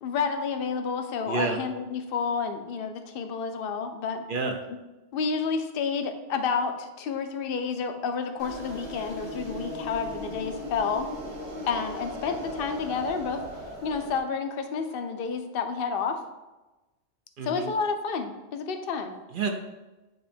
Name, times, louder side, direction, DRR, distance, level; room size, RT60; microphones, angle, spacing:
voice 1, 0.0-4.2 5.1-11.1 11.6-13.4 13.8-16.2 17.4-19.1, left 5 dB, 60° left, 7 dB, 0.7 m, -30 dB
voice 2, 1.2-1.6 4.3-4.6 17.4-17.7 19.3-19.5, right 4 dB, 55° right, 4 dB, 0.7 m, -29 dB
sound 1, 8.4-14.2, equal, 75° right, 1.5 m, -37 dB
7.7 x 3.1 x 4.3 m, 1.1 s
omnidirectional pair, 1.2 m